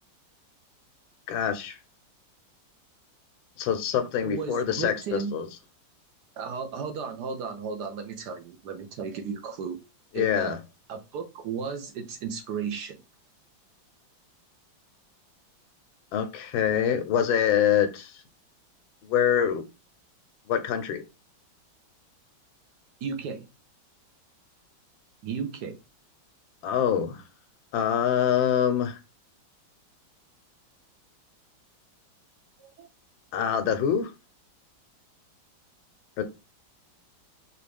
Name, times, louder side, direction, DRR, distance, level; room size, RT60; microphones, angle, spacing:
voice 1, 1.3-1.8 3.6-5.5 10.1-10.6 16.1-18.1 19.0-19.6 20.5-21.0 26.6-27.2 27.7-29.0 33.3-34.1 36.2-36.3, left 9 dB, 85° left, 1.5 m, -25 dB
voice 2, 4.2-5.3 6.4-9.8 10.1-10.6 10.9-13.0 23.0-23.5 25.2-25.8 32.6-32.9, right 5 dB, 65° right, 1.2 m, -34 dB
4.9 x 3.0 x 3.4 m
omnidirectional pair, 2.1 m